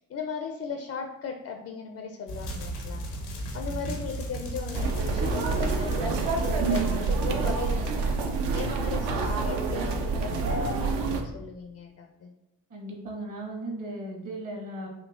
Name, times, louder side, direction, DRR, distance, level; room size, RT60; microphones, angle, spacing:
voice 1, 0.0-3.0 3.5-12.3, left 5 dB, 30° left, 3 dB, 0.4 m, -37 dB
sound 1, 2.3-9.1, right 1 dB, 90° left, 0.7 m, -37 dB
sound 2, 4.7-11.2, right 4 dB, 60° right, 0.6 m, -27 dB
voice 2, 12.7-14.9, right 1 dB, 40° right, -1 dB, 1.3 m, -37 dB
3.6 x 2.8 x 2.4 m, 0.93 s
hypercardioid pair, 45°, 47 cm